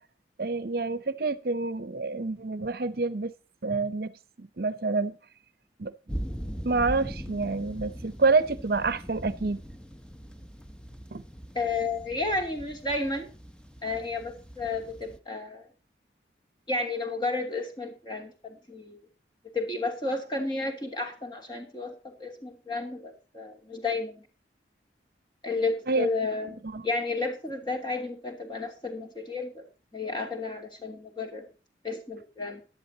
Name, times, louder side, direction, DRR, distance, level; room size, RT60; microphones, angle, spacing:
voice 1, 0.4-3.3 3.6-5.1 5.8-5.9 6.6-9.6 11.1-11.2 25.9-26.1 26.6-26.8, right 3 dB, 55° right, 16 dB, 0.7 m, -28 dB
sound 1, 6.1-15.2, equal, 5° left, 0.7 m, -41 dB
voice 2, 11.5-13.3 13.8-15.7 16.7-19.0 19.4-24.3 25.4-29.7 29.9-31.5 31.8-32.6, left 3 dB, 25° left, 3 dB, 2.8 m, -32 dB
16.5 x 11.0 x 2.8 m, 0.34 s
head